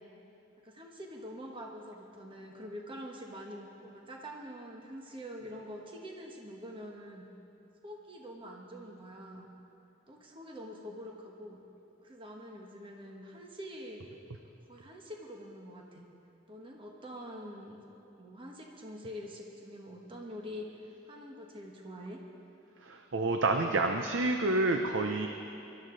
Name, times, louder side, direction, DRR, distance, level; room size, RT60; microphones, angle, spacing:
voice 1, 0.6-7.3 7.8-9.5 10.1-11.6 12.0-14.0 14.7-16.1 16.5-17.8 18.2-22.2, equal, 25° right, 0 dB, 1.3 m, -45 dB
voice 2, 22.8-25.3, right 2 dB, 70° right, 4 dB, 0.7 m, -28 dB
23.0 x 13.0 x 3.9 m, 2.7 s
head